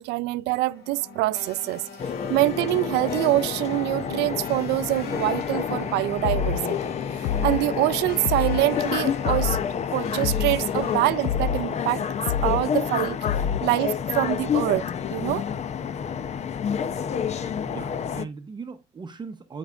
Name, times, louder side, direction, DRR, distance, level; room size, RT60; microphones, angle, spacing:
voice 1, 0.0-1.8 2.3-6.9 7.4-9.6 9.9-12.0 12.4-13.2 13.6-15.4, right 18 dB, 90° right, 0.5 m, -25 dB
sound 1, 0.6-11.0, left 4 dB, 65° left, 2.3 m, -38 dB
sound 2, 2.0-18.3, left 7 dB, 40° left, 0.6 m, -29 dB
sound 3, 6.2-6.6 7.2-7.6 8.2-8.6 9.2-9.6 10.2-10.6 11.2-11.6 12.3-12.7 13.3-13.7, left 8 dB, 85° left, 0.5 m, -26 dB
voice 2, 17.4-19.6, right 5 dB, 25° right, 0.8 m, -39 dB
13.5 x 5.4 x 2.4 m
cardioid pair, 110°, 17 cm